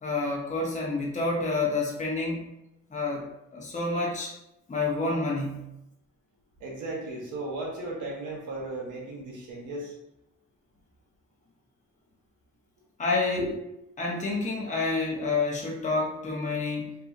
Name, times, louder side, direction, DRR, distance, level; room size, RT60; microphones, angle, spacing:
voice 1, 0.0-2.5 2.9-4.3 4.7-5.7 13.0-13.4 14.0-17.1, left 3 dB, 25° left, -2 dB, 0.8 m, -29 dB
voice 2, 6.6-9.9 13.3-13.5, right 1 dB, 85° right, -2 dB, 0.9 m, -35 dB
2.7 x 2.6 x 2.5 m, 0.87 s
cardioid pair, 90°, 30 cm